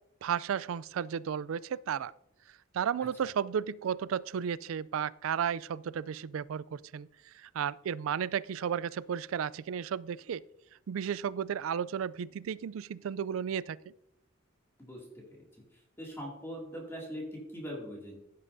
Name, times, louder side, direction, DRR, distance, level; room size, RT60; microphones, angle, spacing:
voice 1, 0.2-2.1 2.7-10.4 10.9-13.8, right 8 dB, 85° right, 20 dB, 0.4 m, -33 dB
voice 2, 14.8-15.5 16.0-18.2, equal, 15° left, -3 dB, 2.4 m, -41 dB
16.0 x 7.5 x 2.7 m, 0.83 s
head